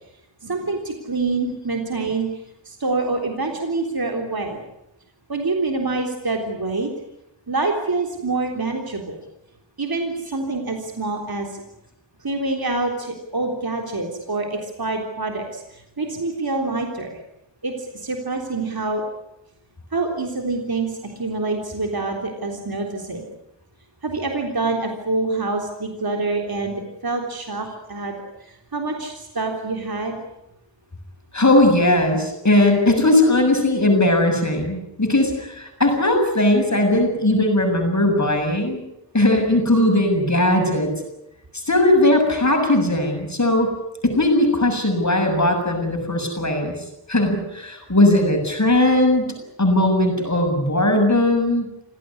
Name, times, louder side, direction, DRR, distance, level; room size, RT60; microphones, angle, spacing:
voice 1, 0.4-2.3 2.7-4.6 5.3-6.9 7.5-9.2 9.8-11.6 12.2-17.2 17.6-19.0 19.9-23.3 24.0-28.1 28.4-30.2, right 3 dB, 55° right, 2 dB, 3.6 m, -26 dB
voice 2, 31.3-38.8 39.1-40.9 41.7-43.7 44.0-46.7 47.1-49.3 49.6-51.7, left 1 dB, 40° left, 3 dB, 7.2 m, -18 dB
26.0 x 17.5 x 9.8 m, 0.87 s
wide cardioid pair, 65°, 43 cm